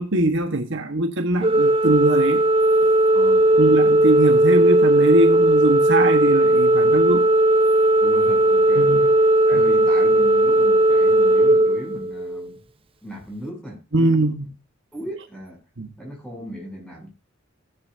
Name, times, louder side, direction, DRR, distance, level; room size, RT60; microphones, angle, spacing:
voice 1, 0.0-2.4 3.6-7.3 8.8-9.0 9.5-9.6 13.9-14.5 15.8-15.9, right 2 dB, 65° right, 1.3 m, -21 dB
Organ, 1.4-12.5, right 1 dB, 30° right, 0.6 m, -17 dB
voice 2, 3.1-3.8 8.0-12.6 13.0-14.3 14.9-15.6 16.0-17.1, equal, 5° left, 7.2 m, -37 dB
18.0 x 10.5 x 2.7 m
head